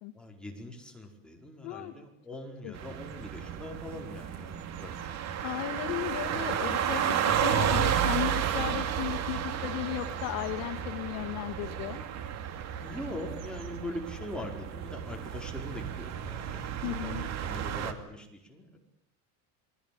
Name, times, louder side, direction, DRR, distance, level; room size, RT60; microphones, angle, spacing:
voice 1, 0.1-5.7 12.6-18.8, left 1 dB, ahead, 0 dB, 4.8 m, -42 dB
voice 2, 1.6-1.9 2.6-2.7 5.4-12.0 16.8-17.3, left 13 dB, 75° left, 7 dB, 1.9 m, -35 dB
sound 1, 2.7-17.9, right 9 dB, 45° right, 2.7 m, -32 dB
29.0 x 21.5 x 8.7 m, 0.77 s
cardioid pair, 160°, 38 cm